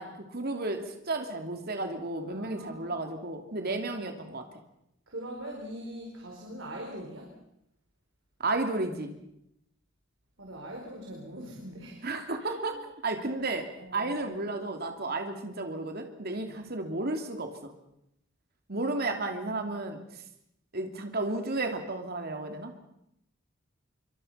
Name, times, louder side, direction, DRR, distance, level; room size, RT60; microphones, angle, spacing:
voice 1, 0.0-4.4 8.4-9.1 12.0-12.8 13.0-13.7 13.9-17.7 18.7-20.0 20.7-22.7, right 2 dB, 55° right, 5 dB, 3.0 m, -33 dB
voice 2, 2.3-2.9 5.1-7.3 10.4-12.1 12.4-12.8 13.8-14.3 16.4-16.6, right 1 dB, 75° right, 0 dB, 4.8 m, -42 dB
26.5 x 25.0 x 5.8 m, 0.79 s
head